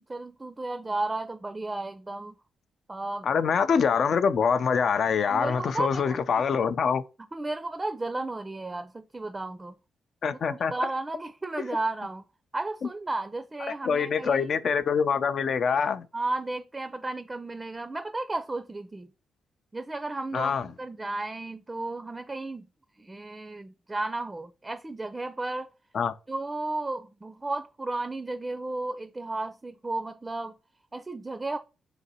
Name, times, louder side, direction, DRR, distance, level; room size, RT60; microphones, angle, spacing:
voice 1, 0.0-2.3 2.9-3.3 5.3-6.5 7.3-9.7 10.5-12.2 12.5-14.5 16.1-19.1 19.7-22.7 23.0-25.7 26.3-30.5 30.9-31.6, right 2 dB, 25° right, 0.5 m, -33 dB
voice 2, 3.2-7.0 10.2-10.7 13.7-16.1 20.3-20.7 25.9-26.1, left 6 dB, 65° left, 0.4 m, -25 dB
3.9 x 2.9 x 4.1 m
supercardioid pair, 60°, 0 cm